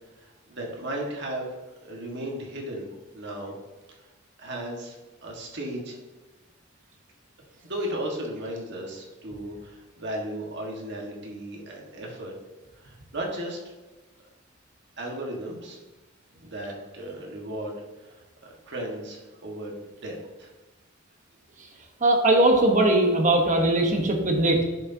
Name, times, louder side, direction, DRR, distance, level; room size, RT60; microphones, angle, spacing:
voice 1, 0.2-1.5 1.8-2.9 3.1-3.5 3.9-4.1 4.4-6.0 7.6-12.3 12.8-13.6 15.0-15.8 16.4-19.7 20.0-20.5, right 1 dB, 60° right, -1 dB, 1.6 m, -35 dB
voice 2, 22.0-24.6, right 1 dB, 40° right, 2 dB, 1.1 m, -20 dB
11.0 x 6.5 x 2.8 m, 1.2 s
head